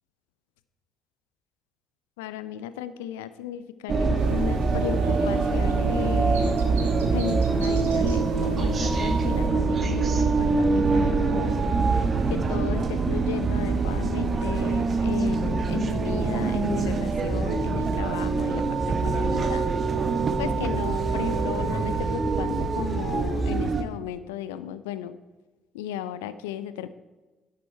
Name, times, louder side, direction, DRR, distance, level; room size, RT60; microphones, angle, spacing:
voice 1, 2.2-6.8 7.0-11.6 12.3-19.7 20.4-25.1 25.7-26.9, left 11 dB, 80° left, 13 dB, 0.5 m, -35 dB
sound 1, 3.9-23.8, right 4 dB, 45° right, 1.2 m, -24 dB
sound 2, 4.2-9.5, right 4 dB, 90° right, 1.4 m, -45 dB
10.5 x 8.3 x 4.5 m, 1.2 s
hypercardioid pair, 50°, 0 cm